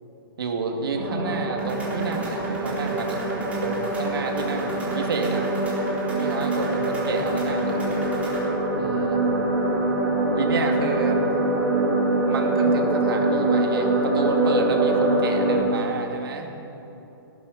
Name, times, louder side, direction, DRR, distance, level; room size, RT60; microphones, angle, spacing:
voice 1, 0.4-3.2 3.6-5.4 6.2-7.8 8.8-9.2 10.4-11.2 12.3-16.5, right 4 dB, 70° right, 3 dB, 2.3 m, -30 dB
sound 1, 1.0-15.6, right 2 dB, 35° right, 4.2 m, -24 dB
sound 2, 1.6-8.4, right 2 dB, 10° right, 3.7 m, -40 dB
18.0 x 12.5 x 5.4 m, 3.0 s
hypercardioid pair, 155°, 12 cm